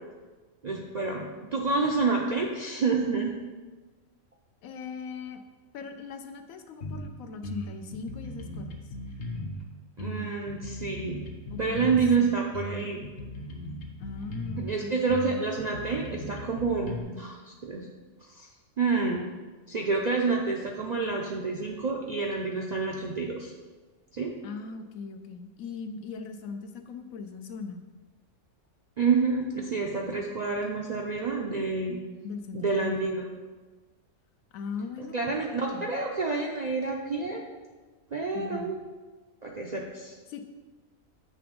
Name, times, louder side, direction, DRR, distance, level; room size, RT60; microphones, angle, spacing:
voice 1, 0.6-3.3 10.0-11.2 11.6-13.0 14.6-17.9 18.2-18.5 18.8-19.2 19.7-23.5 24.1-24.3 29.0-32.0 32.5-33.3 35.1-37.4 38.1-38.8 39.4-40.2, right 4 dB, 60° right, -1 dB, 0.4 m, -28 dB
voice 2, 4.6-5.5 5.7-8.9 11.5-12.4 14.0-15.3 24.4-27.9 32.2-32.9 34.5-35.9 38.3-38.7 40.3-40.4, left 5 dB, 85° left, 7 dB, 1.0 m, -40 dB
sound 1, 6.8-7.1 7.4-9.6 10.0-12.2 12.5-14.7 15.1-17.0, left 1 dB, 60° left, 1.0 m, -37 dB
7.8 x 3.4 x 5.1 m, 1.3 s
omnidirectional pair, 1.4 m